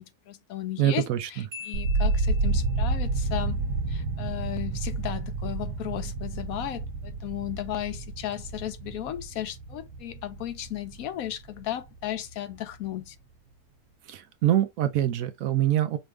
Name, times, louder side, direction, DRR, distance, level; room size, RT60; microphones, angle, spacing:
voice 1, 0.0-3.6 3.9-13.2, left 12 dB, 70° left, 0.9 m, -35 dB
voice 2, 0.8-1.3 14.1-16.0, right 12 dB, 70° right, 0.9 m, -24 dB
Marimba xylophone, 1.5-2.9, left 6 dB, 40° right, 0.9 m, -44 dB
sound 1, 1.7-11.7 12.0-12.7, right 3 dB, 85° right, 1.2 m, -30 dB
5.2 x 2.4 x 3.2 m
omnidirectional pair, 1.6 m